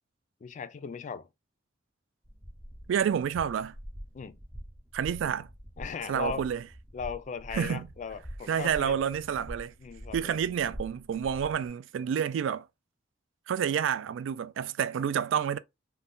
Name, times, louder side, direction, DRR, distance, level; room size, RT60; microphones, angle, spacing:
voice 1, 0.4-1.3 4.1-4.4 5.8-6.5 6.9-9.0 9.8-10.4, left 6 dB, 40° left, 0.3 m, -38 dB
sound 1, 2.2-11.7, equal, 10° right, 0.6 m, -45 dB
voice 2, 2.9-3.7 4.9-5.5 6.1-6.6 7.5-7.8 8.5-9.7 10.1-12.7 13.5-15.6, right 8 dB, 80° right, 0.3 m, -29 dB
2.6 x 2.1 x 3.5 m
head